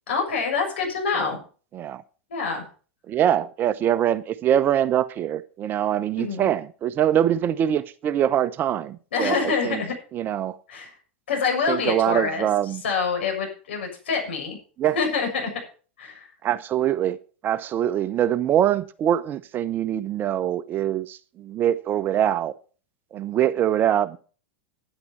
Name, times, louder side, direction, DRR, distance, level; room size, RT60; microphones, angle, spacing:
voice 1, 0.1-1.4 2.3-2.7 6.2-6.5 9.1-9.9 10.7-10.9 11.3-12.5 12.8-14.6 14.9-15.5 16.0-16.3, left 5 dB, 70° left, 6.9 m, -26 dB
voice 2, 3.1-9.8 10.1-10.6 11.7-12.8 14.8-15.0 16.4-17.2 17.4-22.5 23.1-24.2, right 10 dB, 30° right, 0.8 m, -23 dB
10.0 x 9.7 x 5.8 m
figure-of-eight pair, 90°, 6 cm